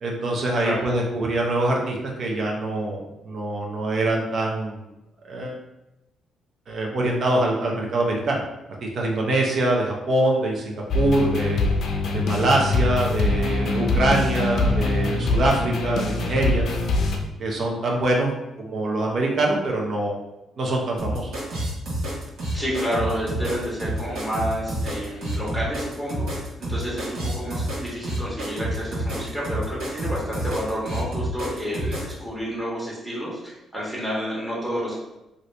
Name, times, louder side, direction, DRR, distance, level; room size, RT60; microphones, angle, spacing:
voice 1, 0.0-4.8 5.2-5.6 6.7-8.4 8.8-11.6 12.1-16.7 17.4-18.3 18.6-20.2 20.6-21.3, right 2 dB, 55° right, -1 dB, 0.6 m, -24 dB
sound 1, 10.9-17.2, left 2 dB, 65° left, 0.5 m, -23 dB
sound 2, 21.0-32.1, right 1 dB, 85° right, 1.1 m, -28 dB
voice 2, 22.5-35.0, equal, 15° right, -6 dB, 1.1 m, -30 dB
2.7 x 2.5 x 3.2 m, 0.94 s
cardioid pair, 90°, 0 cm